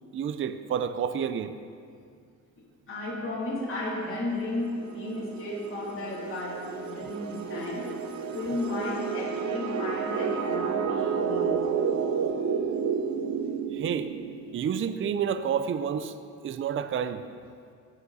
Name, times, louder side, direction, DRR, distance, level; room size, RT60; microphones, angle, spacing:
voice 1, 0.1-1.6 12.2-12.3 13.7-14.1 14.5-16.1 16.4-17.2, right 8 dB, 40° right, 11 dB, 0.5 m, -29 dB
voice 2, 2.6-7.9 8.3-11.6, left 2 dB, 45° left, -6 dB, 3.1 m, -34 dB
sound 1, 4.3-14.8, right 6 dB, 65° right, 0.8 m, -31 dB
17.5 x 7.2 x 4.1 m, 2.2 s
cardioid pair, 90°, 30 cm